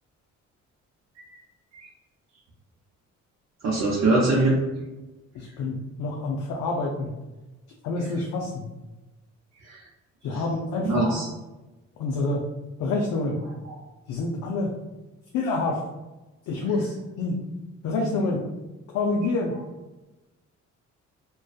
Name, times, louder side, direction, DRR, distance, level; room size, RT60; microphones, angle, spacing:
voice 1, 3.6-4.6 9.7-9.8 10.9-11.3, right 2 dB, 65° right, -6 dB, 0.6 m, -22 dB
voice 2, 5.3-7.1 7.8-8.7 10.2-11.1 12.0-12.4 12.8-13.4 14.1-14.7 15.3-15.8 16.5-17.4 17.8-18.4 18.9-19.6, left 3 dB, 75° left, -1 dB, 0.5 m, -27 dB
2.5 x 2.3 x 2.3 m, 1.1 s
cardioid pair, 90°, 30 cm